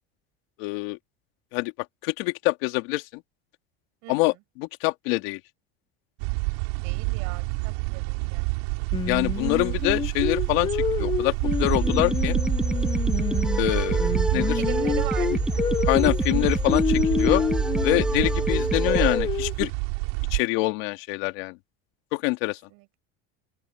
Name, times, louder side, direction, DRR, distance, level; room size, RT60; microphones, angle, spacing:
voice 1, 0.6-1.0 1.5-1.7 2.0-3.2 4.1-5.4 9.1-12.4 13.6-14.6 15.9-17.4 17.8-19.7 20.3-21.6 22.1-22.6, left 22 dB, 75° left, 2.6 m, -25 dB
sound 1, 6.2-20.4, right 31 dB, 80° right, 3.5 m, -28 dB
voice 2, 6.8-8.5 13.2-13.6 14.6-15.7 18.2-18.3 22.7-23.0, right 27 dB, 65° right, 6.7 m, -39 dB
Singing, 8.9-13.6 14.0-18.0 18.5-19.7, left 7 dB, 15° left, 0.6 m, -28 dB
sound 2, 11.5-19.2, right 1 dB, ahead, 1.4 m, -27 dB
open air
cardioid pair, 165°, 30 cm